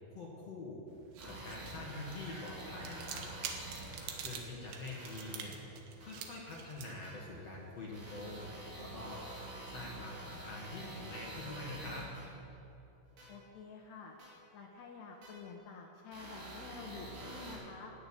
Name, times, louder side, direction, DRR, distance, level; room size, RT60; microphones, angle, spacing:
voice 1, 0.1-0.9 1.2-3.3 3.9-5.6 6.0-12.1, left 2 dB, 55° left, -4 dB, 1.8 m, -45 dB
sound 1, 0.9-9.3, right 7 dB, 75° right, 2.4 m, -49 dB
sound 2, 1.2-4.3 4.9-5.4 6.0-6.1 7.0-7.1 7.9-12.2 13.2-13.3 14.2-14.3 15.2-15.3 16.1-17.6, right 1 dB, 50° right, 6.3 m, -47 dB
sound 3, 1.5-9.9, right 1 dB, 25° right, 1.5 m, -61 dB
voice 2, 13.3-14.2 14.5-17.9, left 5 dB, 75° left, 0 dB, 2.5 m, -49 dB
13.5 x 9.3 x 9.0 m, 2.8 s
omnidirectional pair, 5.9 m